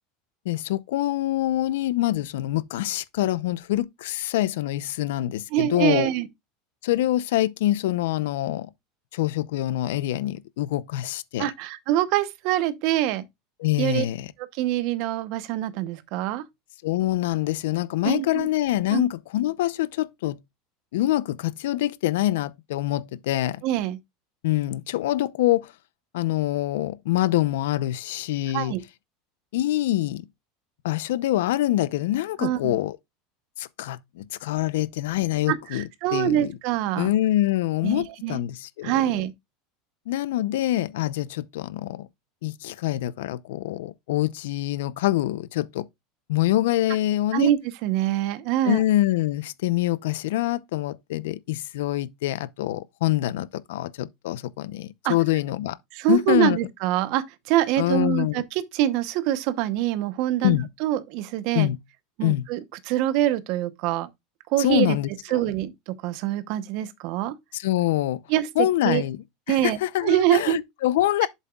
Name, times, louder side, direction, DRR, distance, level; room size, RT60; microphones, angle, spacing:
voice 1, 0.4-6.1 6.8-8.7 9.1-11.5 13.6-14.3 16.8-20.4 20.9-23.6 24.4-25.7 26.1-28.8 29.5-30.2 30.8-33.0 33.6-36.5 37.0-38.9 40.1-42.1 42.4-45.9 46.3-47.5 48.6-55.8 56.1-56.6 57.8-58.4 60.4-60.7 61.5-61.8 62.2-62.5 64.6-65.4 67.5-68.2 68.6-71.3, left 15 dB, 85° left, 0.6 m, -25 dB
voice 2, 5.5-6.3 11.4-13.2 13.8-14.0 14.6-16.4 18.0-18.5 18.9-19.0 23.6-24.0 28.5-28.8 32.4-32.8 35.5-37.1 37.8-38.4 38.8-39.3 47.3-48.8 55.0-55.1 55.9-61.7 62.2-62.6 62.9-64.1 64.5-65.0 65.3-67.3 68.3-69.0 69.5-69.8 70.0-70.6, right 13 dB, 50° right, 0.8 m, -25 dB
8.0 x 7.5 x 2.3 m
supercardioid pair, 170°, 0 cm